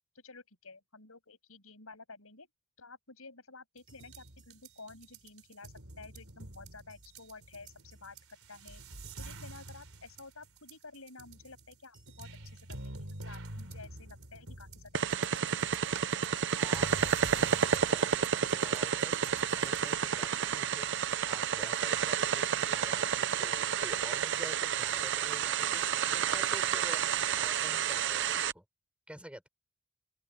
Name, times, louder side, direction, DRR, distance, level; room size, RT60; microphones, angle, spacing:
voice 1, 0.1-2.5 2.8-8.2 8.5-8.8 9.2-15.0 15.3-15.6, left 3 dB, 70° left, 7.5 m, -52 dB
sound 1, 3.8-19.9, right 2 dB, 70° right, 4.1 m, -48 dB
sound 2, 14.9-28.5, right 7 dB, 55° right, 0.8 m, -30 dB
voice 2, 16.6-28.6 29.1-29.5, equal, 5° right, 7.2 m, -49 dB
open air
head